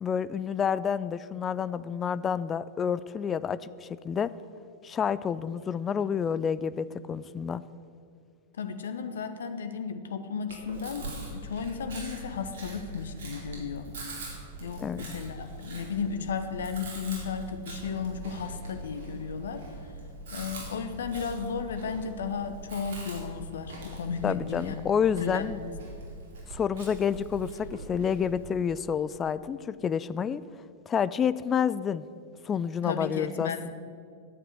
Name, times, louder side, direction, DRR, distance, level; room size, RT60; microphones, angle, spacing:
voice 1, 0.0-4.3 4.8-7.6 14.8-15.0 24.2-25.6 26.5-30.4 30.9-32.0 32.4-33.7, left 7 dB, 20° left, 16 dB, 0.4 m, -29 dB
voice 2, 8.6-11.0 11.3-13.9 14.6-19.6 20.3-24.8 25.2-25.5 32.8-33.7, left 6 dB, 65° left, 8 dB, 1.2 m, -34 dB
Chewing mastication, 10.5-28.5, right 2 dB, 60° right, 4.3 m, -42 dB
12.0 x 8.7 x 8.6 m, 2.3 s
figure-of-eight pair, 95°, 0 cm